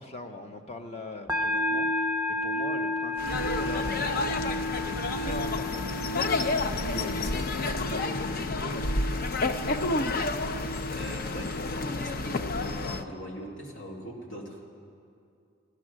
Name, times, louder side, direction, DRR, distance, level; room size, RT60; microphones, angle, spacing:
voice 1, 0.0-4.3 4.8-6.0 6.9-9.1, left 2 dB, 30° left, 4 dB, 1.0 m, -42 dB
sound 1, 1.3-12.7, left 1 dB, 10° right, 0.8 m, -33 dB
sound 2, 3.2-13.0, left 3 dB, 45° left, 0.6 m, -30 dB
voice 2, 10.8-14.6, equal, 65° left, -2 dB, 2.5 m, -40 dB
16.5 x 12.0 x 6.3 m, 2.4 s
head